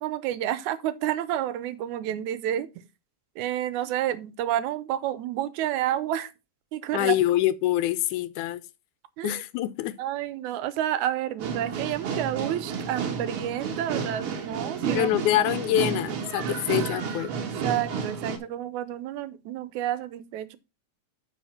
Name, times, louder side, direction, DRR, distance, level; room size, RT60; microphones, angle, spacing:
voice 1, 0.0-2.7 3.4-6.3 6.7-7.2 9.2-9.4 10.0-15.1 15.4-15.5 16.5-16.6 17.3-20.6, right 12 dB, 80° right, 2.1 m, -30 dB
voice 2, 6.9-8.6 9.2-10.0 14.9-17.3, left 14 dB, 85° left, 2.1 m, -25 dB
sound 1, 11.4-18.4, right 6 dB, 55° right, 1.9 m, -31 dB
9.1 x 4.8 x 4.2 m
omnidirectional pair, 3.4 m